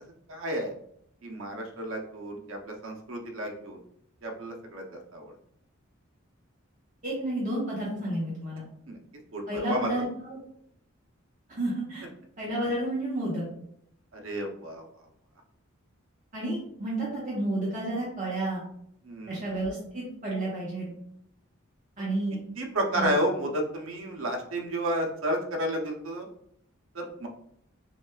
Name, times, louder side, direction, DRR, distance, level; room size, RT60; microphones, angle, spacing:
voice 1, 0.3-0.7 1.2-3.8 4.2-5.3 8.9-9.0 9.3-9.9 14.1-14.8 19.0-19.4 22.0-22.1 22.6-26.3 26.9-27.3, equal, 70° right, 2 dB, 0.7 m, -31 dB
voice 2, 7.0-8.6 9.5-10.4 11.5-12.0 12.4-13.4 16.3-18.6 19.3-20.9 22.0-22.4 22.9-23.2, right 1 dB, 40° right, -6 dB, 0.9 m, -31 dB
5.8 x 2.3 x 2.3 m, 0.72 s
head